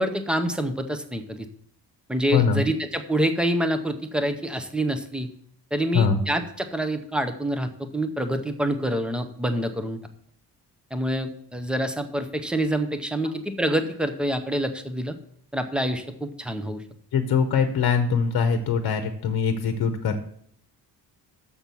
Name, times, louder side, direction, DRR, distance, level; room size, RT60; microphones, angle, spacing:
voice 1, 0.0-1.5 2.1-5.3 5.7-10.0 10.9-15.1 15.5-16.8, right 1 dB, ahead, 7 dB, 0.6 m, -26 dB
voice 2, 2.3-2.7 5.9-6.2 17.1-20.2, left 6 dB, 55° left, 7 dB, 0.9 m, -22 dB
7.1 x 5.9 x 6.8 m, 0.68 s
wide cardioid pair, 175°, 40 cm